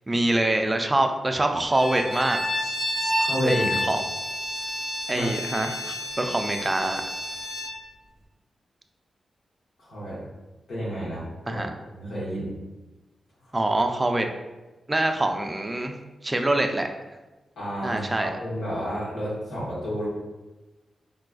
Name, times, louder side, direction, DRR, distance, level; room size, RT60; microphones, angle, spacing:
voice 1, 0.1-2.4 3.5-4.0 5.1-7.0 11.5-11.7 13.5-14.3 14.9-15.9 16.2-16.9 17.8-18.3, right 1 dB, 25° right, 5 dB, 0.3 m, -25 dB
Bowed string instrument, 1.7-7.8, left 1 dB, 40° left, 1.3 m, -30 dB
voice 2, 3.2-3.7 5.1-5.3 9.8-10.2 10.7-11.6 11.9-12.5 17.6-20.1, equal, 90° left, -8 dB, 1.2 m, -30 dB
4.0 x 2.3 x 2.3 m, 1.1 s
cardioid pair, 55°, 0 cm